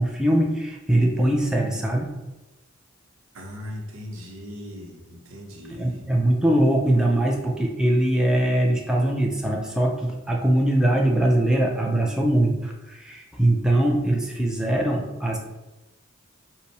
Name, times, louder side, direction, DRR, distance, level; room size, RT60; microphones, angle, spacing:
voice 1, 0.0-2.2 5.7-15.4, right 1 dB, 5° right, -1 dB, 0.5 m, -22 dB
voice 2, 3.3-6.1, equal, 75° right, 1 dB, 0.9 m, -38 dB
5.5 x 2.1 x 4.6 m, 1.0 s
head